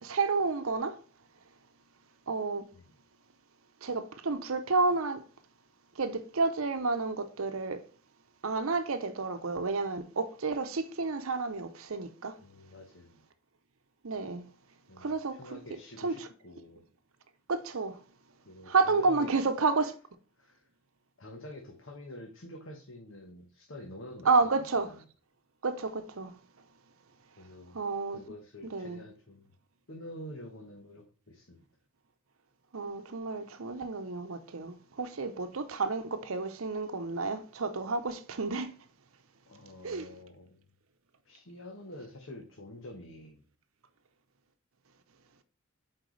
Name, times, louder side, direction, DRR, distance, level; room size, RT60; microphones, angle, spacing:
voice 1, 0.0-1.0 2.3-2.7 3.8-5.2 6.0-7.8 8.4-12.4 14.0-14.4 15.0-15.6 16.0-16.3 17.5-18.0 18.7-19.9 24.2-25.0 25.6-26.4 27.7-28.2 28.6-29.0 32.7-38.7 39.8-40.1, right 3 dB, 75° right, 0.8 m, -30 dB
voice 2, 12.4-13.2 14.9-16.9 18.4-19.4 20.4-20.6 21.2-24.9 27.4-27.8 28.1-29.5 29.9-31.6 39.5-40.6 41.2-43.4, left 1 dB, 60° left, 1.2 m, -47 dB
7.8 x 4.5 x 3.2 m
head